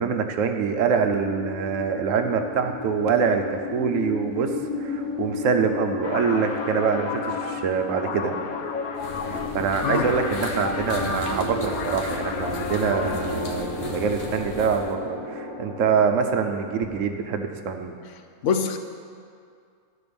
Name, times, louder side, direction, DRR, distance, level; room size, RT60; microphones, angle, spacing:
voice 1, 0.0-4.5 4.8-8.3 9.2-18.0, right 6 dB, 70° right, 6 dB, 1.1 m, -25 dB
sound 1, 1.0-17.9, left 3 dB, 20° left, 1.4 m, -34 dB
sound 2, 6.0-13.4, left 5 dB, 90° left, 1.2 m, -33 dB
sound 3, 9.0-14.9, left 3 dB, 45° left, 0.9 m, -36 dB
voice 2, 18.4-18.8, left 6 dB, 65° left, 7 dB, 1.0 m, -23 dB
12.5 x 4.4 x 6.8 m, 2.3 s
omnidirectional pair, 1.5 m